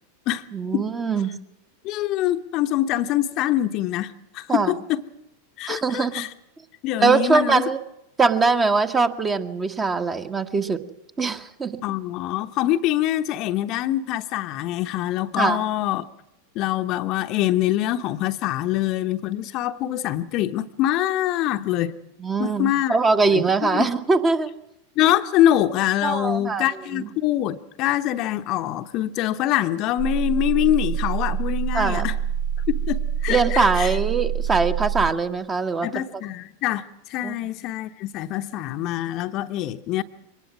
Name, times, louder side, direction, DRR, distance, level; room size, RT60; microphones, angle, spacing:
voice 1, 0.5-1.4 4.5-4.7 5.7-6.3 7.0-7.8 8.2-10.8 11.2-11.8 15.4-15.6 22.2-24.5 26.0-26.7 26.9-27.1 31.7-32.2 33.3-36.0 37.2-37.3, right 4 dB, 20° right, 1.4 m, -22 dB
voice 2, 1.8-5.0 5.6-6.3 6.8-7.6 11.8-16.1 16.5-22.0 22.4-23.0 23.3-23.9 25.0-32.1 32.7-34.0 35.8-40.0, left 13 dB, 40° left, 1.0 m, -24 dB
sound 1, 30.0-35.1, right 9 dB, 50° right, 1.9 m, -26 dB
23.5 x 19.5 x 6.2 m
figure-of-eight pair, 90°, 0 cm